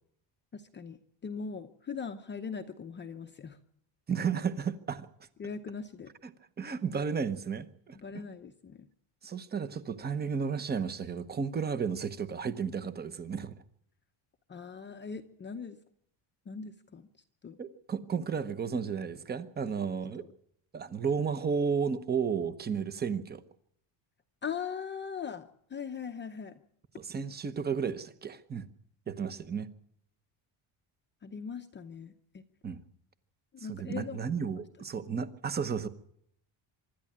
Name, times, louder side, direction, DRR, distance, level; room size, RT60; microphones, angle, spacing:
voice 1, 0.5-3.6 5.4-6.1 7.9-8.9 14.5-15.8 16.5-17.1 17.4-17.6 19.6-19.7 20.2-20.3 24.4-26.6 31.2-32.4 33.5-34.6, left 6 dB, 25° left, 6 dB, 0.8 m, -40 dB
voice 2, 4.1-5.1 6.6-8.0 9.2-13.5 17.6-20.3 20.7-23.4 27.0-28.7 29.1-29.7 32.6-32.8 33.7-35.9, right 6 dB, 20° right, 12 dB, 0.9 m, -33 dB
25.0 x 12.0 x 8.6 m, 0.70 s
cardioid pair, 165°, 48 cm